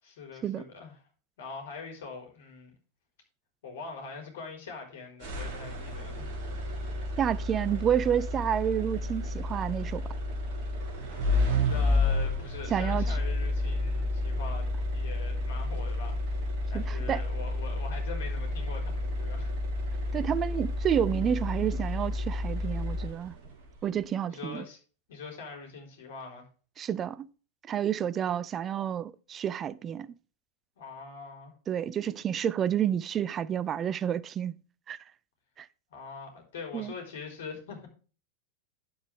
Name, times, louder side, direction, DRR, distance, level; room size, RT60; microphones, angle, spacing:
voice 1, 0.0-1.0 1.4-2.7 3.6-6.3 11.7-19.5 24.2-24.8 25.1-26.5 30.8-31.5 35.9-37.9, left 4 dB, 55° left, 4.1 m, -43 dB
sound 1, 5.2-23.5, left 1 dB, 45° right, 2.8 m, -31 dB
voice 2, 7.2-10.0 12.7-13.0 16.7-17.2 20.1-23.3 23.8-24.6 26.8-27.3 27.7-30.1 31.7-34.5 34.9-35.0 35.6-35.7 36.7-36.9, right 9 dB, 25° right, 0.6 m, -29 dB
9.6 x 7.9 x 3.5 m
figure-of-eight pair, 90°, 0 cm